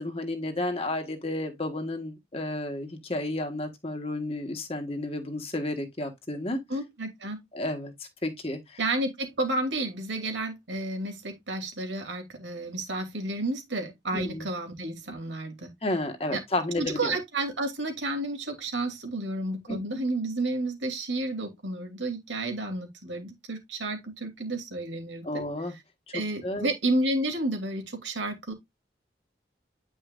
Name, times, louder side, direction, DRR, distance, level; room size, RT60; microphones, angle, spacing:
voice 1, 0.0-6.6 7.5-8.8 14.1-14.5 15.8-17.2 19.7-19.8 25.2-25.8 26.1-26.7, left 1 dB, 30° left, 1.5 m, -32 dB
voice 2, 6.7-7.4 8.8-15.7 16.3-16.4 16.8-25.4 26.1-28.5, right 2 dB, 85° right, 2.7 m, -31 dB
9.6 x 5.3 x 2.5 m
head